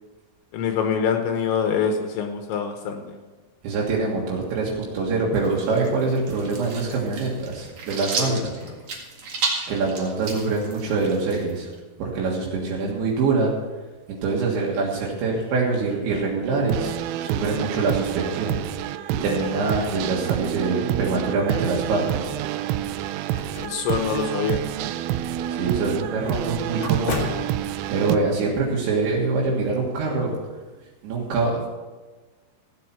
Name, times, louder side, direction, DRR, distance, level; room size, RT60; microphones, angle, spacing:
voice 1, 0.5-3.0 8.2-8.5 23.6-24.6, left 6 dB, 75° left, 5 dB, 3.1 m, -25 dB
voice 2, 3.6-8.5 9.7-11.7 12.0-13.5 14.1-18.6 19.2-22.3 25.5-27.2 27.9-30.4 31.0-31.7, right 3 dB, 70° right, -3 dB, 3.8 m, -24 dB
sound 1, 5.3-11.8, right 4 dB, 50° right, 2.4 m, -32 dB
sound 2, 16.7-28.2, right 12 dB, 90° right, 3.1 m, -28 dB
sound 3, 22.9-28.2, left 3 dB, 55° left, 1.4 m, -36 dB
16.0 x 8.7 x 5.8 m, 1.3 s
omnidirectional pair, 5.7 m